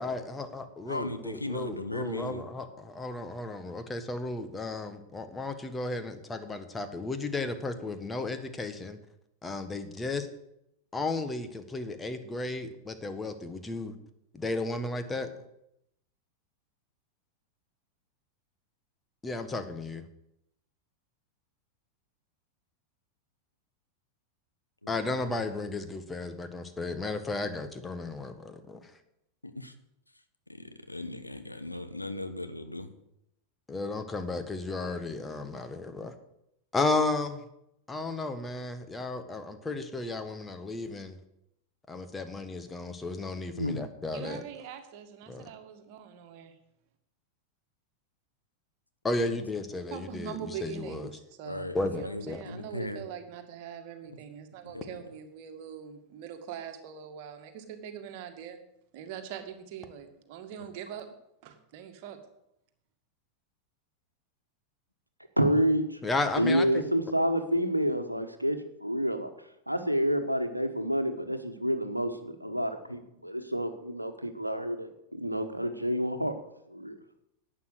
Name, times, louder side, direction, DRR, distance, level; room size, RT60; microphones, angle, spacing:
voice 1, 0.0-9.0 9.4-10.3 10.9-13.9 14.3-15.3 19.2-20.0 24.9-28.9 33.7-36.1 36.7-37.4 37.9-41.2 41.9-44.4 45.3-45.5 49.0-51.1 51.7-52.4 66.0-66.8, left 3 dB, 15° left, 8 dB, 1.5 m, -34 dB
voice 2, 0.9-2.4 24.8-24.9 29.4-29.7 30.5-32.9 43.6-43.9 49.2-49.3 51.5-51.8 52.0-53.0 54.7-54.9, left 1 dB, 85° left, 8 dB, 1.1 m, -37 dB
voice 3, 44.1-46.6 49.9-58.6 58.9-61.1 61.4-62.2, right 8 dB, 45° right, 6 dB, 2.0 m, -43 dB
voice 4, 65.4-65.8 66.4-69.3 69.7-76.3 76.7-76.9, equal, 90° right, 8 dB, 1.3 m, -28 dB
11.5 x 8.8 x 7.9 m, 0.80 s
figure-of-eight pair, 90°, 0 cm